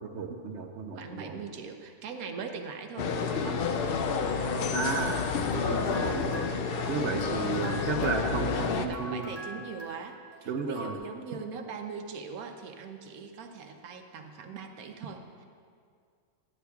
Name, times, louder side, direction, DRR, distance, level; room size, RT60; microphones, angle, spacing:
voice 1, 0.0-1.4 4.7-5.2 5.5-6.5 6.9-9.3 10.5-10.9, right 4 dB, 60° right, 4 dB, 0.8 m, -33 dB
voice 2, 0.9-3.6 7.6-8.5 8.9-15.4, right 5 dB, 90° right, 5 dB, 1.1 m, -41 dB
sound 1, 3.0-8.9, left 5 dB, 65° left, 0.5 m, -29 dB
sound 2, 5.1-11.0, left 1 dB, 20° right, 1.3 m, -45 dB
13.0 x 9.8 x 2.3 m, 2.2 s
omnidirectional pair, 1.5 m